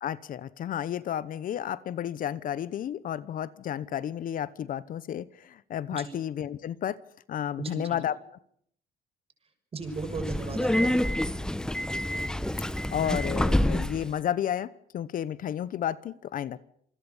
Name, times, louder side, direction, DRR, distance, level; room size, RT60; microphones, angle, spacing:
voice 1, 0.0-7.0 7.3-8.2 12.9-16.6, left 10 dB, 55° left, 18 dB, 1.0 m, -32 dB
voice 2, 7.6-8.0 9.7-11.0, right 4 dB, 35° right, 8 dB, 6.3 m, -36 dB
Subway metro underground, 9.9-14.1, left 1 dB, 5° left, 1.1 m, -27 dB
27.5 x 21.0 x 7.2 m, 0.67 s
cardioid pair, 110°, 17 cm